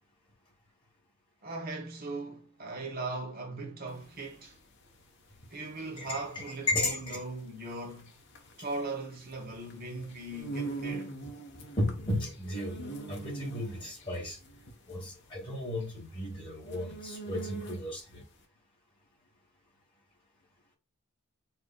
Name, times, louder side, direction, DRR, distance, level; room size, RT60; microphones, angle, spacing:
voice 1, 1.4-4.6 5.5-8.1 8.6-11.2, right 2 dB, 45° right, 1.1 m, -39 dB
sound 1, 3.9-18.1, right 3 dB, 55° left, 1.1 m, -43 dB
voice 2, 6.0-7.2 11.8-14.4 14.9-18.2, left 1 dB, 25° left, 2.2 m, -34 dB
6.9 x 3.0 x 2.3 m
head